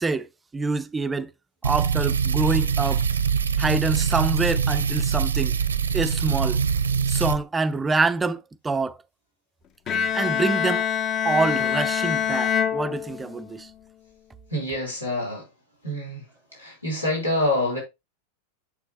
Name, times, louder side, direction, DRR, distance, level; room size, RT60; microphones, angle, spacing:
voice 1, 0.0-1.3 1.6-3.0 3.6-5.6 5.9-6.6 7.1-9.0 10.1-10.9 11.2-13.7, right 3 dB, 15° right, 0.5 m, -26 dB
sound 1, 1.6-7.4, right 6 dB, 70° right, 0.8 m, -23 dB
Bowed string instrument, 9.9-13.6, left 8 dB, 30° left, 0.8 m, -25 dB
voice 2, 14.5-15.5 15.8-16.3 16.5-17.8, left 1 dB, 85° left, 4.3 m, -26 dB
9.1 x 7.3 x 2.9 m
figure-of-eight pair, 90°, 0 cm